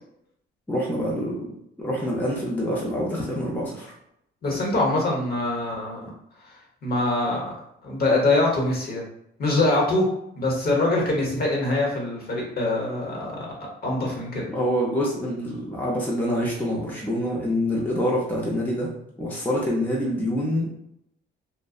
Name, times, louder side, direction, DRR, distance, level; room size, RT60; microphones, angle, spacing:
voice 1, 0.7-1.5 1.8-3.9 14.5-18.9 19.2-20.7, equal, 10° left, -4 dB, 0.6 m, -26 dB
voice 2, 4.4-6.1 6.8-7.4 7.8-9.0 9.4-10.1 10.4-13.5 13.8-14.5, left 2 dB, 50° left, -2 dB, 1.0 m, -23 dB
2.6 x 2.1 x 2.4 m, 0.77 s
cardioid pair, 90°, 20 cm